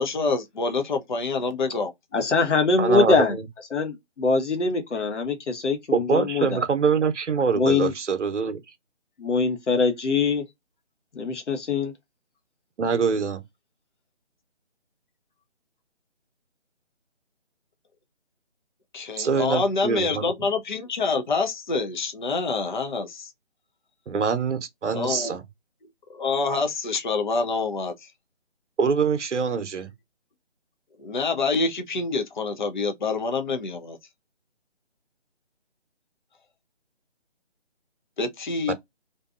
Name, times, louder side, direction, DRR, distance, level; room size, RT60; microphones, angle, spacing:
voice 1, 0.0-1.9 18.9-23.3 24.9-25.3 26.1-28.1 31.0-34.0 38.2-38.7, left 4 dB, 45° left, 0.4 m, -26 dB
voice 2, 2.1-3.3 3.7-6.6 7.5-7.9 9.2-10.4 11.2-11.9, left 4 dB, 80° left, 1.0 m, -23 dB
voice 3, 2.8-3.5 5.9-8.6 12.8-13.4 19.2-20.3 24.1-25.4 28.8-29.9 38.7-38.8, right 5 dB, 80° right, 0.7 m, -24 dB
2.6 x 2.2 x 2.4 m
figure-of-eight pair, 160°, 35 cm